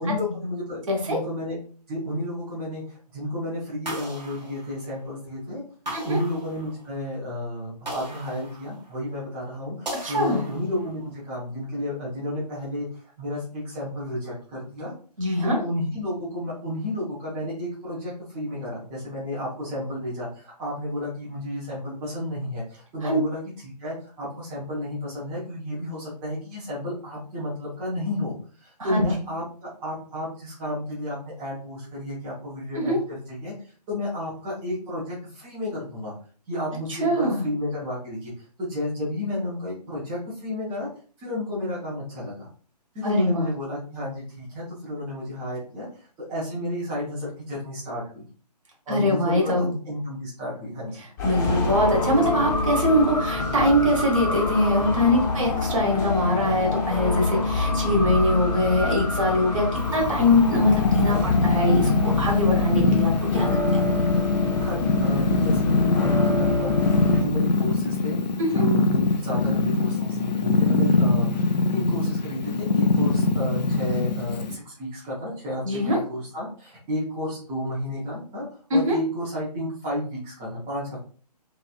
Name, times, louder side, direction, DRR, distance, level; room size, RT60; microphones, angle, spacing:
voice 1, 0.0-1.6 1.9-5.6 6.0-14.9 15.4-36.1 36.5-40.9 41.2-42.5 42.9-48.3 48.9-51.0 57.8-58.1 64.6-68.2 68.5-78.4 78.7-81.0, left 1 dB, 10° right, -7 dB, 0.4 m, -32 dB
voice 2, 0.9-1.2 5.9-6.2 10.0-10.4 15.2-15.6 23.0-23.2 28.9-29.1 32.8-33.0 36.9-37.5 43.0-43.5 48.9-49.7 51.2-63.8 68.4-68.5 75.6-76.0 78.7-79.0, left 1 dB, 50° right, 0 dB, 1.1 m, -22 dB
sound 1, 3.9-5.2 5.9-7.0 7.9-9.1 9.9-11.0, right 1 dB, 85° right, 1.0 m, -38 dB
sound 2, 51.2-67.2, left 3 dB, 25° left, 0.6 m, -27 dB
Purr, 59.8-74.6, left 3 dB, 85° left, 0.4 m, -23 dB
2.8 x 2.3 x 2.2 m, 0.41 s
figure-of-eight pair, 140°, 21 cm